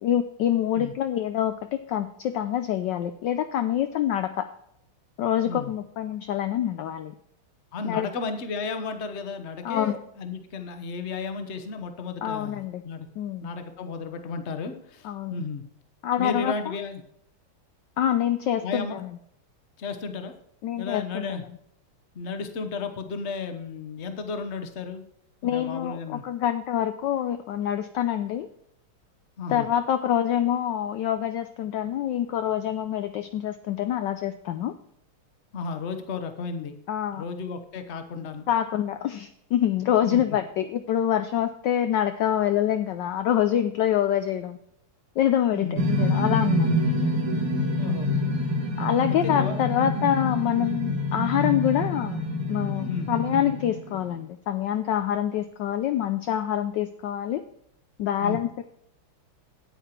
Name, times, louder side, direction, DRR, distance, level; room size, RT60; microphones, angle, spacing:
voice 1, 0.0-4.5 5.2-7.1 7.8-8.1 9.6-10.0 12.2-12.8 13.2-13.5 15.0-15.4 16.0-16.5 18.0-19.1 20.6-21.4 25.4-28.5 29.5-34.7 36.9-37.2 38.5-44.6 45.2-46.7 48.8-57.4 58.0-58.6, left 10 dB, 75° left, 9 dB, 1.1 m, -26 dB
voice 2, 7.7-13.1 13.4-15.6 16.2-17.0 18.6-19.0 19.8-20.3 20.8-21.4 22.1-25.0 25.4-26.2 29.4-29.7 35.5-36.7 37.1-38.5 40.0-40.4 45.5-45.8 47.7-48.4 49.2-49.6 52.9-53.1 58.2-58.4, left 4 dB, 40° left, 7 dB, 1.0 m, -33 dB
sound 1, 45.8-54.2, left 1 dB, 75° right, 2.9 m, -26 dB
9.3 x 9.0 x 4.4 m, 0.74 s
omnidirectional pair, 2.4 m